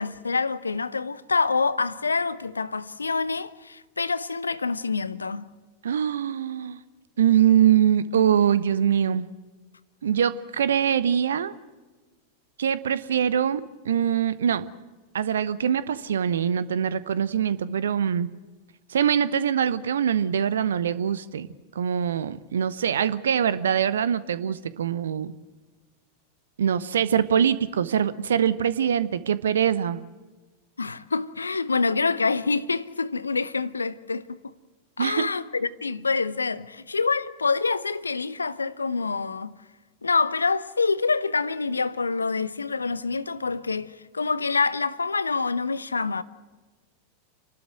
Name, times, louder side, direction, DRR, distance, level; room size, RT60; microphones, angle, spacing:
voice 1, 0.0-5.5 30.8-34.5 35.0-39.6 40.0-46.2, left 4 dB, 75° left, 0.7 m, -26 dB
voice 2, 5.8-6.8 7.2-9.3 10.0-11.6 12.6-14.6 15.1-18.3 18.9-21.5 21.7-25.3 26.6-30.0 35.0-35.3, right 8 dB, 65° right, 0.9 m, -23 dB
29.5 x 12.5 x 7.8 m
figure-of-eight pair, 90°, 0 cm